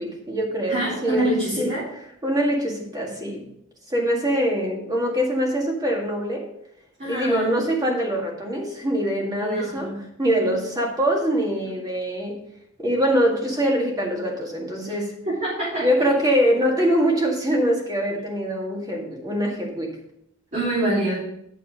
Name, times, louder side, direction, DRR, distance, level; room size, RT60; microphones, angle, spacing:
voice 1, 0.0-1.3 1.6-1.7 2.2-3.4 3.9-6.5 7.1-9.9 10.2-12.4 12.8-15.1 15.8-20.0, equal, 20° right, -1 dB, 2.0 m, -23 dB
voice 2, 0.6-1.9 7.0-7.6 9.4-10.0 10.2-10.5 15.2-15.9 20.5-21.2, right 1 dB, 35° right, -11 dB, 3.9 m, -26 dB
9.2 x 6.6 x 5.0 m, 0.75 s
head